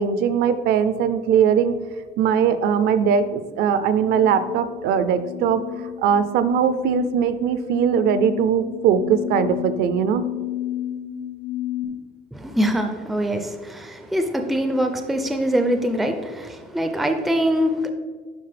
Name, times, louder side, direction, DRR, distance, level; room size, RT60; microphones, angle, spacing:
voice 1, 0.0-1.8 2.2-10.2, right 7 dB, 65° right, 12 dB, 0.5 m, -20 dB
sound 1, 2.7-11.8, left 12 dB, 75° left, 2.2 m, -33 dB
voice 2, 12.3-17.9, equal, ahead, 5 dB, 0.4 m, -23 dB
11.5 x 3.9 x 3.4 m, 1.5 s
cardioid pair, 170°, 18 cm